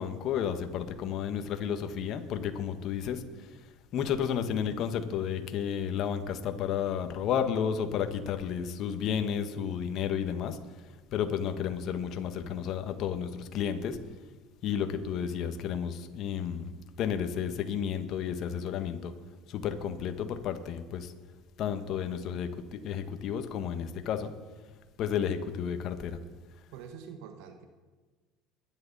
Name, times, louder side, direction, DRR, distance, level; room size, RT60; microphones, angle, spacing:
voice 1, 0.0-14.0 14.6-16.7 17.0-19.1 19.5-21.1 21.6-24.3 25.0-26.2, left 8 dB, 60° left, 8 dB, 1.4 m, -32 dB
voice 2, 26.7-27.7, right 7 dB, 75° right, 6 dB, 1.3 m, -45 dB
22.0 x 11.0 x 4.2 m, 1.3 s
supercardioid pair, 85°, 0 cm